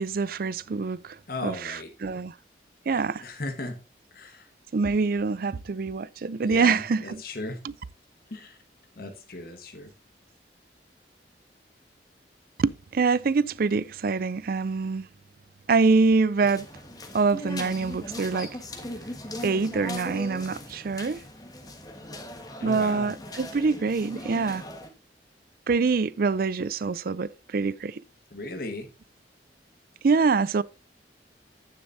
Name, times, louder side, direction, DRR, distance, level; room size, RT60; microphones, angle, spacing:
voice 1, 0.0-1.2 1.4-2.3 2.9-3.2 4.7-7.2 7.6-7.7 12.6-15.1 15.7-16.7 17.1-18.6 19.4-21.2 22.6-24.6 25.7-28.0 30.0-30.6, right 4 dB, 55° right, 0.4 m, -25 dB
voice 2, 1.3-1.9 2.9-3.8 4.1-4.4 6.4-7.6 8.3-8.6 9.0-9.9 22.6-23.1 28.3-28.9, left 2 dB, 55° left, 1.4 m, -36 dB
sound 1, 16.4-24.9, left 1 dB, 20° left, 1.5 m, -39 dB
10.5 x 9.6 x 2.7 m
head